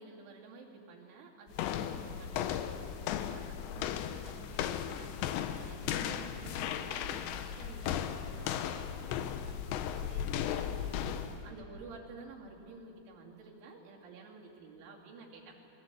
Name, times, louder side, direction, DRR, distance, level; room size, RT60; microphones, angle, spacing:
voice 1, 0.0-15.6, right 3 dB, 80° right, -3 dB, 5.2 m, -52 dB
sound 1, 1.5-11.4, left 9 dB, 80° left, 3.1 m, -36 dB
27.0 x 19.5 x 8.4 m, 2.8 s
omnidirectional pair, 5.4 m